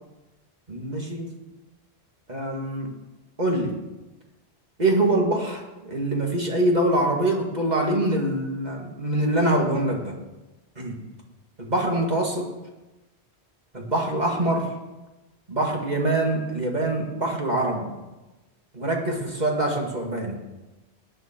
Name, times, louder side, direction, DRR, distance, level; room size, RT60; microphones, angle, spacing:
voice 1, 0.7-1.3 2.3-2.9 3.4-3.8 4.8-10.2 10.8-11.0 11.6-12.5 13.7-14.7 15.5-17.9 18.7-20.4, right 1 dB, 40° right, 0 dB, 2.2 m, -24 dB
19.0 x 9.6 x 4.5 m, 1.1 s
omnidirectional pair, 1.1 m